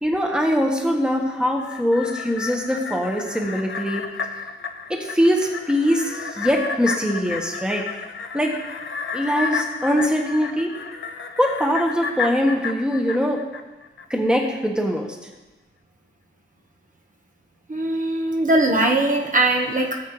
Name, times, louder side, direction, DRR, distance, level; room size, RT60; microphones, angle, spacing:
voice 1, 0.0-4.0 4.9-7.8 8.3-8.6 9.1-10.7 11.4-13.4 14.1-15.2, equal, 5° right, 1 dB, 1.3 m, -22 dB
sound 1, 1.5-14.0 14.4-14.5, left 5 dB, 65° left, 0.8 m, -32 dB
voice 2, 17.7-20.0, right 2 dB, 40° right, 2 dB, 1.2 m, -20 dB
17.5 x 7.4 x 3.2 m, 1.1 s
wide cardioid pair, 130°, 21 cm